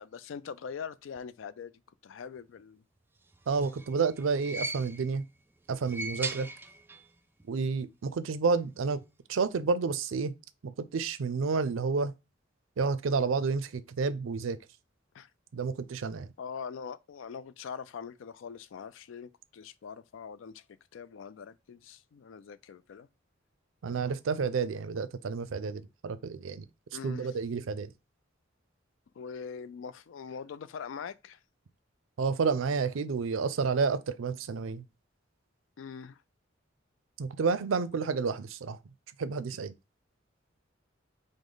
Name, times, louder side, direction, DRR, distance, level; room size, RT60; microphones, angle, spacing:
voice 1, 0.0-1.7 2.0-2.8 15.1-15.3 16.4-20.6 20.9-23.1 26.9-27.3 29.2-31.4 35.8-36.2, left 6 dB, 70° left, 0.4 m, -42 dB
sound 1, 3.3-5.2 5.7-7.1 7.4-7.5 8.6-8.7, right 3 dB, 10° right, 0.3 m, -39 dB
voice 2, 3.5-5.2 5.7-6.5 7.5-9.0 9.3-10.3 10.6-12.1 12.8-14.6 15.5-16.3 23.8-26.7 27.0-27.9 32.2-34.8 37.2-38.8 39.2-39.7, right 5 dB, 80° right, 0.4 m, -30 dB
5.0 x 2.1 x 3.8 m
head